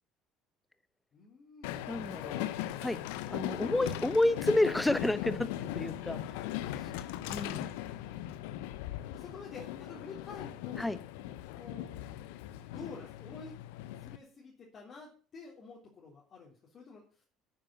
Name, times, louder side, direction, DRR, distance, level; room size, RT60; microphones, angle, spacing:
voice 1, 1.1-1.7 9.1-10.9 11.5-11.9 12.6-13.6 14.0-17.2, left 4 dB, 40° left, -2 dB, 3.5 m, -50 dB
Train, 1.6-14.2, left 13 dB, 70° left, 0.8 m, -39 dB
voice 2, 1.9-2.4 2.8-3.0 3.3-6.2 7.3-7.8 10.8-11.0, left 1 dB, 10° left, 15 dB, 1.1 m, -30 dB
9.8 x 9.0 x 6.3 m, 0.40 s
figure-of-eight pair, 60°, 0 cm